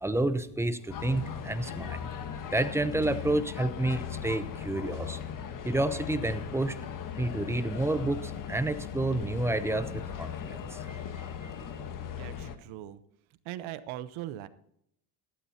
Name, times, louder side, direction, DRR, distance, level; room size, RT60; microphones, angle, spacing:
voice 1, 0.0-2.1 2.4-5.2 5.6-6.8 7.2-11.5, right 2 dB, 5° right, 11 dB, 0.6 m, -30 dB
sound 1, 0.9-12.6, left 8 dB, 40° left, 1.3 m, -38 dB
voice 2, 12.0-13.0 13.4-14.5, right 13 dB, 75° right, 13 dB, 1.1 m, -40 dB
15.5 x 13.0 x 2.9 m, 0.71 s
cardioid pair, 135°, 49 cm